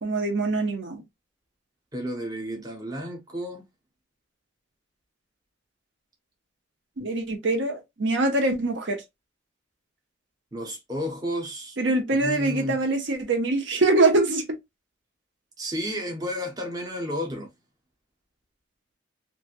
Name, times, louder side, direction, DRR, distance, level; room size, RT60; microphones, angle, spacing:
voice 1, 0.0-1.0 7.0-9.0 11.8-14.4, right 2 dB, 70° right, 0.7 m, -24 dB
voice 2, 1.9-3.6 10.5-11.8 12.1-12.8 15.6-17.5, equal, 20° right, 0.7 m, -32 dB
3.1 x 2.4 x 2.5 m
head